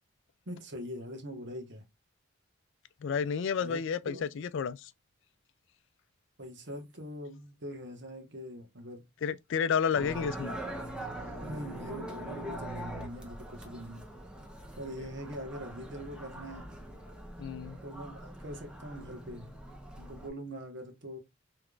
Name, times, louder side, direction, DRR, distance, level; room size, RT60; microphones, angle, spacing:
voice 1, 0.5-1.8 3.6-4.2 6.4-9.0 11.4-14.0 14.8-16.8 17.8-19.5 20.0-21.2, equal, 65° right, 1.3 m, -43 dB
voice 2, 3.0-4.9 9.2-10.6 17.4-17.8, left 6 dB, 65° left, 0.3 m, -31 dB
sound 1, 10.0-20.3, right 1 dB, 5° right, 0.9 m, -42 dB
5.0 x 3.3 x 2.4 m
head